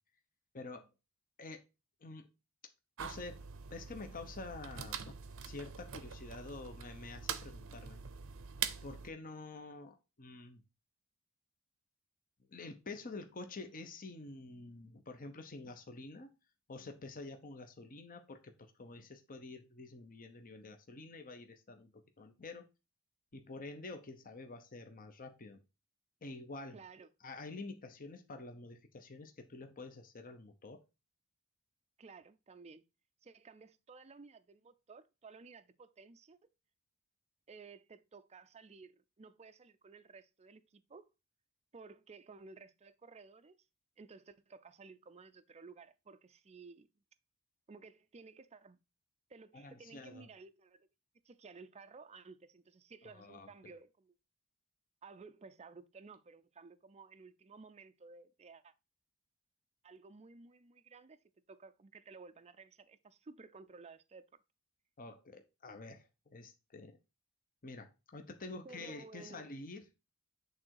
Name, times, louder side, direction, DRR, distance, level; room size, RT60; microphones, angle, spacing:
voice 1, 0.5-0.9 1.4-1.6 2.0-2.3 3.0-3.4 3.7-5.1 5.4-8.0 8.8-10.6 12.5-16.4 16.7-22.7 23.3-25.6 26.2-26.8 27.2-30.8 49.5-50.3 53.1-53.8 65.0-67.0 67.6-69.9, left 3 dB, 40° left, 0.9 m, -48 dB
sound 1, 3.0-9.1, right 7 dB, 65° right, 0.7 m, -44 dB
voice 2, 26.7-27.1 32.0-32.8 33.2-36.4 37.5-41.1 41.7-43.6 44.0-46.9 47.7-48.8 49.3-50.9 51.2-54.1 55.0-58.7 59.8-64.3 68.6-69.6, right 4 dB, 30° right, 0.5 m, -55 dB
8.6 x 3.8 x 4.6 m
head